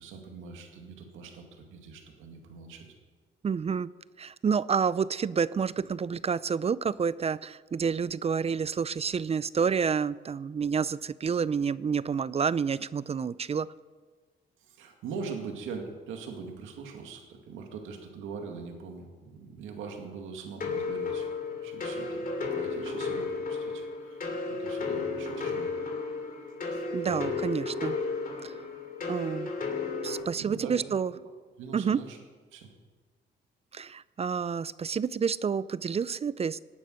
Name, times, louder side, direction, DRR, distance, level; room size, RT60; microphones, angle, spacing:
voice 1, 0.0-2.9 14.6-25.7 26.7-27.4 30.4-30.8 31.1-31.3 31.6-32.2 32.5-32.7, right 5 dB, 90° right, 3 dB, 2.2 m, -42 dB
voice 2, 3.4-3.9 4.2-13.7 26.9-28.0 28.4-28.5 29.1-29.5 30.0-31.1 31.7-32.0 33.7-36.6, right 6 dB, 30° right, 18 dB, 0.5 m, -29 dB
sound 1, 20.6-30.2, left 4 dB, 45° left, 2.9 m, -33 dB
17.0 x 9.8 x 6.4 m, 1.4 s
cardioid pair, 90°, 20 cm